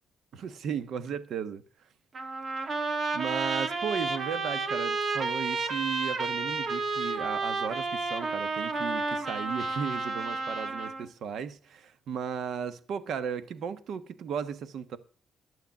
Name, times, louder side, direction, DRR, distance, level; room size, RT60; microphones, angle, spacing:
voice 1, 0.3-1.6 3.1-15.0, right 7 dB, 70° right, 1.2 m, -35 dB
Trumpet, 2.1-11.1, right 3 dB, 45° right, 1.8 m, -31 dB
12.0 x 7.9 x 7.1 m
cardioid pair, 90°, 0 cm